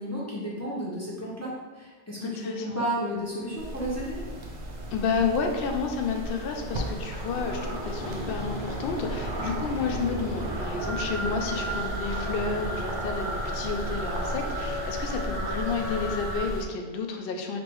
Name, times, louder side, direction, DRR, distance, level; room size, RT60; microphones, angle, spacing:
voice 1, 0.0-4.2, right 1 dB, 15° left, -7 dB, 0.8 m, -32 dB
voice 2, 2.2-2.8 4.9-17.6, left 5 dB, 65° left, 3 dB, 0.7 m, -31 dB
sound 1, 3.1-14.0, left 1 dB, 20° right, 1.3 m, -40 dB
sound 2, 3.6-16.6, right 1 dB, 50° right, 0.6 m, -35 dB
sound 3, 10.8-16.4, equal, 30° left, 1.1 m, -35 dB
3.3 x 2.6 x 4.5 m, 1.4 s
omnidirectional pair, 1.1 m